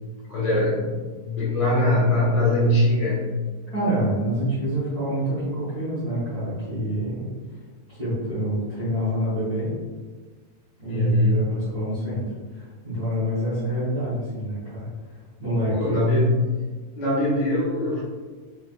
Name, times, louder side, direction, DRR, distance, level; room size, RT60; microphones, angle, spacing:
voice 1, 0.3-1.0 1.2-3.4 10.9-11.4 15.7-16.6 17.0-18.0, left 1 dB, 65° left, -7 dB, 2.0 m, -22 dB
voice 2, 3.7-7.3 7.9-9.7 10.8-12.2 12.5-16.0, equal, 45° right, -13 dB, 1.2 m, -27 dB
4.9 x 3.3 x 2.2 m, 1.4 s
omnidirectional pair, 3.7 m